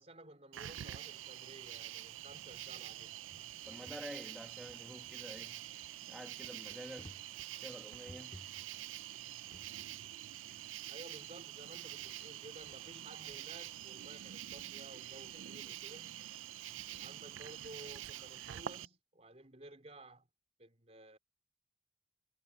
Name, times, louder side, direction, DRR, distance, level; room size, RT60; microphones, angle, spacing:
voice 1, 0.0-3.2 10.9-16.3 17.0-20.3 20.6-21.2, right 1 dB, 35° right, 3.8 m, -55 dB
Cricket, 0.5-18.9, right 12 dB, 85° right, 0.4 m, -46 dB
sound 1, 1.7-3.0 3.2-4.1 4.6-6.0 6.4-10.0 10.4-11.5, equal, 25° left, 3.0 m, -60 dB
voice 2, 3.6-5.7 6.0-7.2 7.5-8.5, equal, ahead, 1.4 m, -49 dB
head